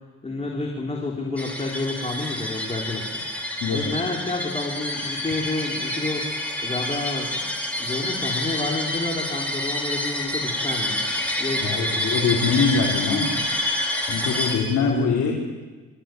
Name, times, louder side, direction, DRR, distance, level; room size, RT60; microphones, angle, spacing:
voice 1, 0.2-3.2 3.7-7.4 7.8-12.1 14.8-15.3, left 2 dB, 20° left, -1 dB, 3.6 m, -30 dB
sound 1, 1.4-14.6, left 1 dB, 5° left, 4.5 m, -28 dB
voice 2, 11.6-13.3 14.1-15.3, left 5 dB, 70° left, -3 dB, 3.9 m, -23 dB
25.0 x 13.5 x 9.2 m, 1.3 s
cardioid pair, 90°, 30 cm